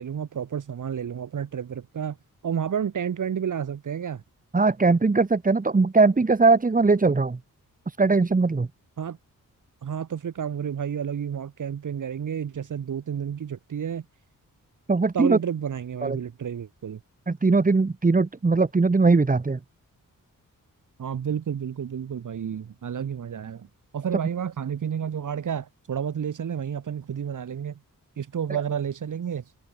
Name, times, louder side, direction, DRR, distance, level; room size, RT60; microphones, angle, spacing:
voice 1, 0.0-2.2 2.4-4.2 9.0-9.2 9.8-14.0 15.1-17.0 21.0-23.7 23.9-27.8 28.2-29.4, right 8 dB, 65° right, 2.0 m, -30 dB
voice 2, 4.5-7.4 7.9-8.7 14.9-15.4 16.0-16.2 17.3-19.6 28.5-28.6, right 3 dB, 25° right, 2.0 m, -20 dB
wide cardioid pair, 135°, 33 cm